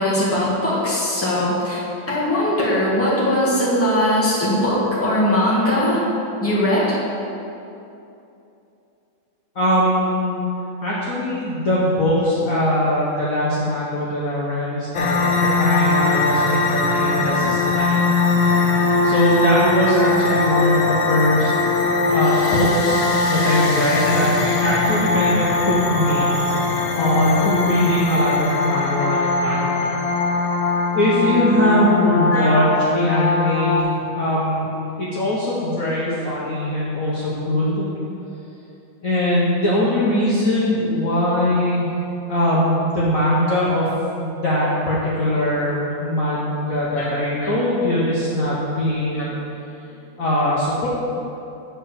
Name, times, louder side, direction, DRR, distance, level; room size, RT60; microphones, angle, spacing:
voice 1, 0.0-1.8 2.1-6.1 6.4-6.9 23.3-23.4 24.1-24.2 29.0-29.1 29.4-29.8 32.3-32.5 47.0-47.1 47.4-47.5 49.1-49.3, left 1 dB, 5° left, -7 dB, 1.6 m, -20 dB
voice 2, 9.5-10.4 10.8-18.1 19.0-21.5 22.1-26.3 26.9-30.0 30.9-34.7 35.0-37.9 39.0-41.9 42.3-43.9 44.1-49.4 50.2-50.9, left 1 dB, 50° left, -7 dB, 1.2 m, -21 dB
sound 1, 14.9-33.8, left 3 dB, 80° left, 1.6 m, -20 dB
7.9 x 4.5 x 6.9 m, 2.8 s
omnidirectional pair, 2.2 m